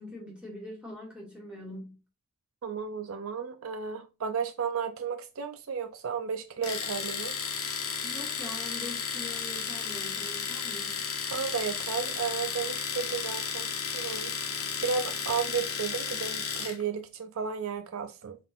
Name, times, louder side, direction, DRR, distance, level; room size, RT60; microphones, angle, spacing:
voice 1, 0.0-2.0 8.0-11.0, left 1 dB, 5° right, 1.9 m, -43 dB
voice 2, 2.6-7.3 11.3-13.7 13.9-14.3 14.8-18.4, right 6 dB, 70° right, 0.5 m, -33 dB
Domestic sounds home sounds, 6.6-16.8, left 6 dB, 75° left, 1.0 m, -33 dB
5.6 x 3.7 x 2.4 m
head